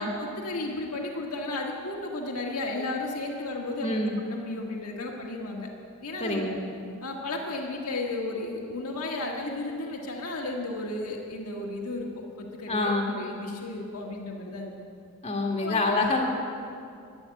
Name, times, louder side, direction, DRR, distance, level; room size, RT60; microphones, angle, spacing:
voice 1, 0.0-4.0 4.3-5.7 6.0-6.6 7.0-14.7 15.6-16.0, left 2 dB, 85° left, 0 dB, 1.6 m, -34 dB
voice 2, 3.8-4.2 6.2-6.6 12.7-13.2 15.2-16.2, left 2 dB, 30° left, 0 dB, 1.8 m, -26 dB
12.5 x 10.5 x 8.3 m, 2.4 s
head